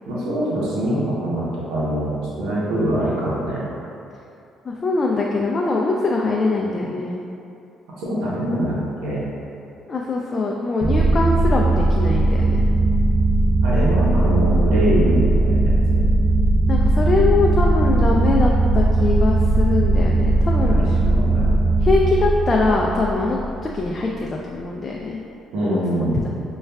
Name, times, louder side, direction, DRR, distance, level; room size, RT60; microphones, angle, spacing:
voice 1, 0.1-3.6 8.0-9.3 13.6-16.0 20.7-21.5 25.5-26.2, right 1 dB, 85° right, -8 dB, 0.8 m, -24 dB
voice 2, 4.6-7.2 9.9-12.6 16.7-20.8 21.8-25.2 25.6-26.3, left 3 dB, 35° left, -1 dB, 0.3 m, -22 dB
sound 1, 10.8-23.7, right 2 dB, 35° right, 0.5 m, -18 dB
6.2 x 2.3 x 2.2 m, 2.7 s
cardioid pair, 85°, 0 cm